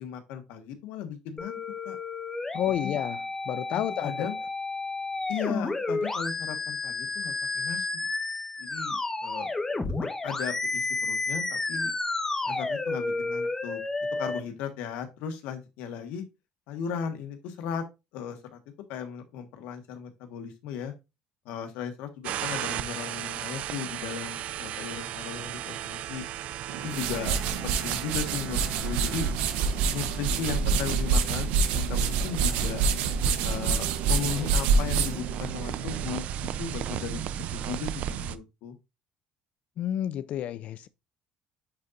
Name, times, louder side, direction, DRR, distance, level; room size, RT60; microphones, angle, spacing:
voice 1, 0.0-1.6 1.8-2.0 2.7-3.0 3.7-4.4 5.3-8.1 8.6-9.5 10.2-11.9 12.4-13.8 14.2-16.2 16.7-17.8 18.1-18.6 18.9-20.9 21.4-26.2 26.8-29.3 29.9-32.8 33.4-38.7, left 7 dB, 85° left, 1.4 m, -36 dB
sound 1, 1.4-14.4, left 3 dB, 15° left, 1.1 m, -31 dB
voice 2, 2.5-3.2 3.5-4.1 39.8-40.9, left 11 dB, 60° left, 0.4 m, -30 dB
sound 2, 22.2-38.4, right 11 dB, 60° right, 0.5 m, -36 dB
sound 3, 26.7-36.0, right 5 dB, 85° right, 0.9 m, -27 dB
9.6 x 4.0 x 2.5 m
cardioid pair, 120°, 3 cm